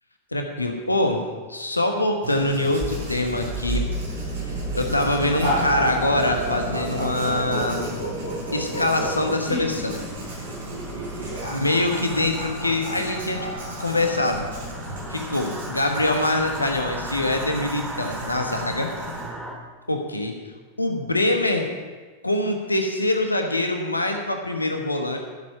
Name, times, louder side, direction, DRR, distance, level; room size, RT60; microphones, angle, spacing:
voice 1, 0.3-1.2 1.5-3.9 4.5-8.0 8.5-10.0 11.4-13.5 13.8-14.5 15.1-18.9 19.9-20.3 20.8-21.7 22.2-25.2, left 1 dB, 85° left, 4 dB, 1.2 m, -24 dB
Writing, 2.2-19.3, equal, 65° right, 4.6 m, -37 dB
sound 1, 2.8-19.5, right 2 dB, 5° right, 1.9 m, -35 dB
sound 2, 5.4-15.3, equal, 85° right, 4.8 m, -32 dB
15.0 x 7.5 x 5.6 m, 1.3 s
figure-of-eight pair, 90°, 0 cm